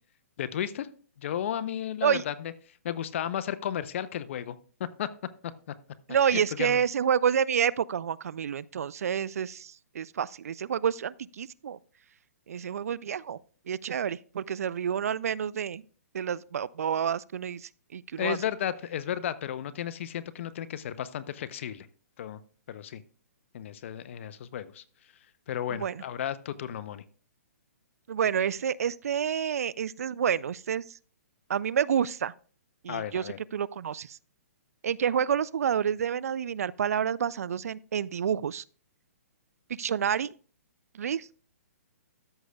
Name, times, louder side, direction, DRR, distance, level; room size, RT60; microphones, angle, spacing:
voice 1, 0.4-0.9 1.2-2.5 2.8-5.1 5.4-5.5 6.3-6.8 18.2-21.9 22.2-22.4 22.7-23.0 23.5-24.8 25.5-27.0 32.9-33.4, left 10 dB, 55° left, 0.6 m, -33 dB
voice 2, 6.1-11.8 12.5-13.4 13.7-15.8 16.1-18.4 25.7-26.0 28.1-30.8 31.5-32.3 32.8-34.2 34.8-38.6 39.8-40.3 40.9-41.3, right 8 dB, 75° right, 0.3 m, -29 dB
13.5 x 6.3 x 2.3 m
hypercardioid pair, 140°, 8 cm